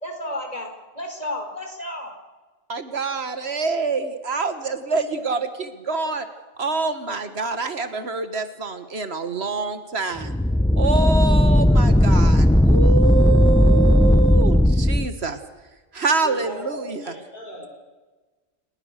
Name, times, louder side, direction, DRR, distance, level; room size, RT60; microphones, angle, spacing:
voice 1, 0.0-2.1, left 1 dB, 35° left, 4 dB, 4.8 m, -32 dB
voice 2, 2.7-6.3 6.6-10.3 10.8-15.4 15.9-17.1, right 4 dB, 75° right, 10 dB, 1.8 m, -26 dB
sound 1, 10.2-15.1, left 1 dB, 5° left, 0.4 m, -16 dB
voice 3, 16.2-16.6 17.0-17.7, left 2 dB, 55° left, -3 dB, 4.6 m, -38 dB
30.0 x 19.5 x 6.6 m, 1.3 s
omnidirectional pair, 1.1 m